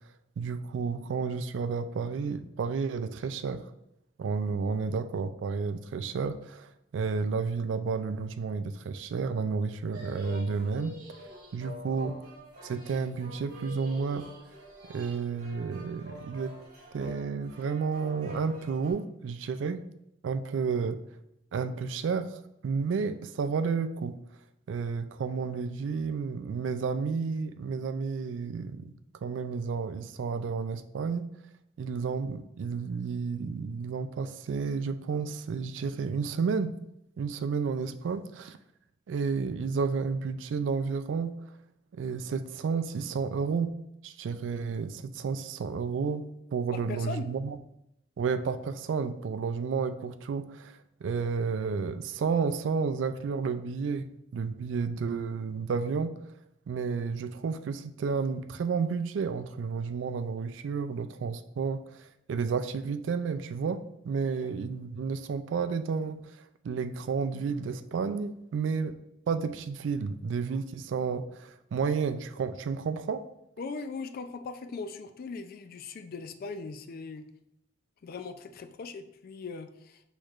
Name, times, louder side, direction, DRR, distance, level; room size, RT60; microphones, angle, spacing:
voice 1, 0.4-3.7 4.2-11.0 11.5-12.2 12.6-14.3 14.9-16.5 16.9-19.9 20.2-21.0 21.5-24.2 24.7-28.9 29.2-31.3 31.8-36.8 37.2-38.6 39.1-41.5 41.9-43.8 44.0-47.6 48.2-56.2 56.7-66.4 66.6-69.0 69.3-73.3, right 5 dB, 75° right, 0.3 m, -31 dB
sound 1, 9.9-18.9, left 1 dB, 50° right, 1.3 m, -46 dB
voice 2, 46.7-47.3 64.4-64.5 73.6-77.3 78.0-80.0, left 4 dB, 50° left, 0.3 m, -39 dB
6.2 x 3.1 x 2.4 m
head